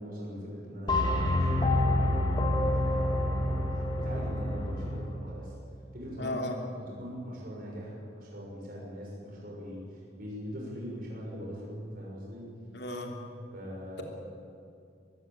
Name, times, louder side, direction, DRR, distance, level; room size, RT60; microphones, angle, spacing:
voice 1, 0.0-5.5 5.9-12.5 13.5-14.0, equal, 50° right, -3 dB, 6.2 m, -41 dB
sound 1, 0.9-5.1, left 1 dB, 25° left, 2.5 m, -27 dB
voice 2, 6.2-6.6 12.7-13.1, left 1 dB, 70° left, 2 dB, 3.2 m, -34 dB
23.5 x 15.0 x 9.1 m, 2.5 s
head